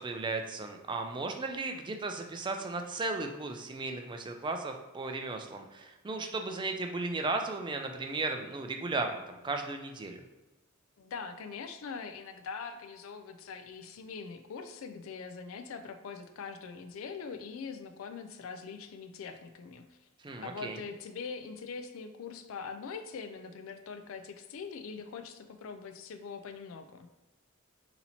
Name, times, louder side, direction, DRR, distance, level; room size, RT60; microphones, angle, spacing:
voice 1, 0.0-10.2 20.2-20.8, right 3 dB, 20° right, 4 dB, 0.4 m, -35 dB
voice 2, 11.0-20.0 20.4-27.1, left 5 dB, 65° left, 8 dB, 0.4 m, -42 dB
4.1 x 2.9 x 4.1 m, 1.1 s
head